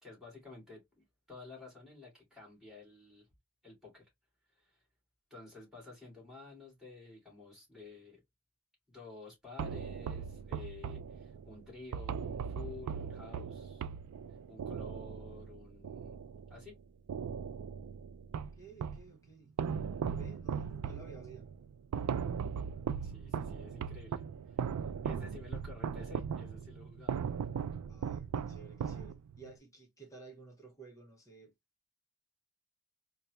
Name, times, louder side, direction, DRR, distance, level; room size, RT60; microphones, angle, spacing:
voice 1, 0.0-3.3 3.6-4.1 4.5-4.8 5.3-8.2 8.9-13.9 14.3-16.2 16.5-16.8 23.0-24.2 24.5-24.6 25.0-27.2, left 3 dB, ahead, 2.3 m, -52 dB
sound 1, 9.6-16.7 17.1-19.1 19.6-29.5, right 7 dB, 85° right, 0.3 m, -38 dB
voice 2, 18.6-19.5 20.0-21.5 27.9-31.5, right 4 dB, 15° left, 0.8 m, -54 dB
4.1 x 2.3 x 2.9 m
head